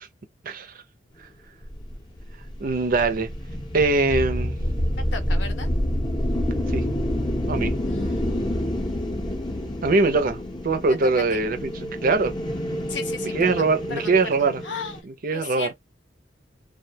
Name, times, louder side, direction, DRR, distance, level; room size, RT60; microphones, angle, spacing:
sound 1, 1.6-15.0, equal, 25° left, 0.6 m, -28 dB
voice 1, 2.6-3.3 3.7-4.6 6.7-6.8 7.5-7.7 9.8-12.3 13.2-14.6 15.0-15.7, right 3 dB, 50° right, 0.5 m, -22 dB
voice 2, 5.1-5.7 7.8-9.1 11.3-11.4 12.9-13.6 13.9-14.1 14.6-15.0 15.3-15.7, left 5 dB, 70° left, 0.7 m, -36 dB
2.3 x 2.2 x 2.7 m
head